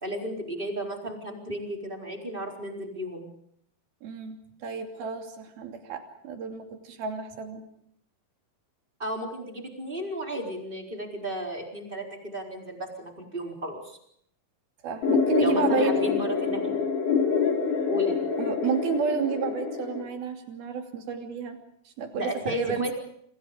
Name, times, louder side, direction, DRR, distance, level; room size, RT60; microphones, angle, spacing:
voice 1, 0.0-3.3 9.0-14.0 15.4-16.8 17.9-18.2 22.1-22.9, equal, 15° right, 1 dB, 4.2 m, -34 dB
voice 2, 4.0-7.7 14.8-15.9 18.4-21.6 21.9-22.9, right 6 dB, 80° right, 4 dB, 4.7 m, -31 dB
sound 1, 15.0-20.0, left 5 dB, 55° left, 5.5 m, -26 dB
28.0 x 26.5 x 5.1 m, 0.69 s
omnidirectional pair, 4.2 m